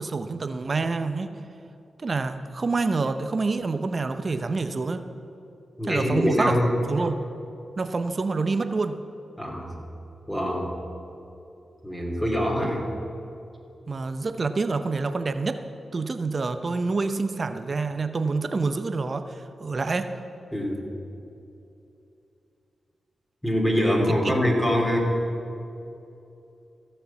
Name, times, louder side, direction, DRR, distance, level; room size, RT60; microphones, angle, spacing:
voice 1, 0.0-1.3 2.0-5.0 5.8-6.6 6.9-7.2 7.8-9.0 13.9-15.6 15.9-20.2, right 3 dB, 50° right, 9 dB, 0.7 m, -27 dB
voice 2, 5.8-6.7 9.4-9.7 10.3-10.7 11.8-12.8 20.5-20.8 23.4-25.1, equal, 10° left, -2 dB, 3.1 m, -24 dB
15.5 x 6.8 x 7.1 m, 2.7 s
supercardioid pair, 45°, 0 cm